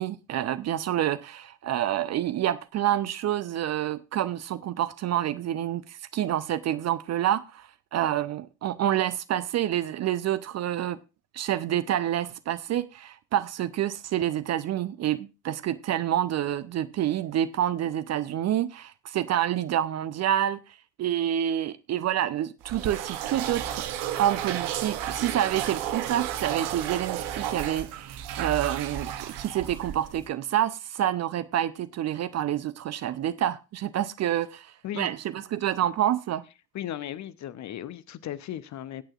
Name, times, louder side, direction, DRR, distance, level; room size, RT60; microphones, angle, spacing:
voice 1, 0.0-11.0 11.3-20.6 21.0-23.9 24.2-36.4, right 11 dB, 35° right, 0.6 m, -28 dB
sound 1, 22.6-30.3, right 10 dB, 60° right, 1.0 m, -33 dB
voice 2, 36.7-39.0, left 11 dB, 35° left, 0.7 m, -36 dB
19.5 x 8.8 x 2.5 m
figure-of-eight pair, 50°, 48 cm